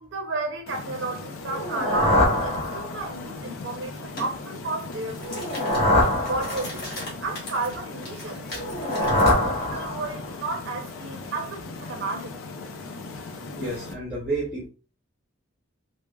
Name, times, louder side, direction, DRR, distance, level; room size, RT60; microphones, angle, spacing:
voice 1, 0.0-5.5 6.2-8.4 8.8-12.4, right 3 dB, 60° right, 0.5 m, -32 dB
sound 1, 0.7-13.9, left 3 dB, 90° left, 0.5 m, -38 dB
sound 2, 1.4-3.3 5.2-7.0 8.5-10.3, left 1 dB, 30° left, 0.7 m, -24 dB
sound 3, 4.2-4.3 4.8-9.4, left 1 dB, 50° left, 1.0 m, -39 dB
voice 2, 13.6-14.7, right 2 dB, 5° right, 0.7 m, -30 dB
3.3 x 2.0 x 2.2 m
head